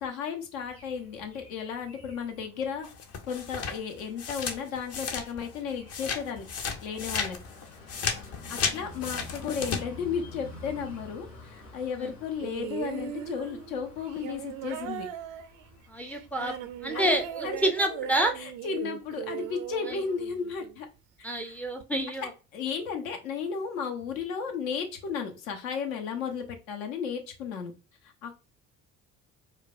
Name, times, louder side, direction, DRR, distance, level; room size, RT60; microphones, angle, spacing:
voice 1, 0.0-2.9 3.3-6.5 6.8-7.4 8.5-11.3 11.7-15.1 16.9-17.1 17.4-17.6 18.6-20.9 21.2-21.3 22.5-27.7 28.2-28.4, left 6 dB, 65° left, 4 dB, 0.9 m, -34 dB
Birds Singing and Traffic, 0.6-17.6, left 2 dB, 90° left, 1.5 m, -50 dB
sound 1, 2.8-5.6 5.9-9.8, left 5 dB, 35° left, 0.7 m, -33 dB
voice 2, 8.4-8.9 12.0-12.2 15.9-16.6 16.8-18.4 19.9-20.0 21.2-22.3, right 1 dB, 5° left, 5 dB, 0.5 m, -29 dB
sound 2, 12.4-20.8 21.8-21.9, right 11 dB, 45° right, 0.5 m, -39 dB
4.8 x 2.2 x 2.3 m, 0.32 s
figure-of-eight pair, 55°, 44 cm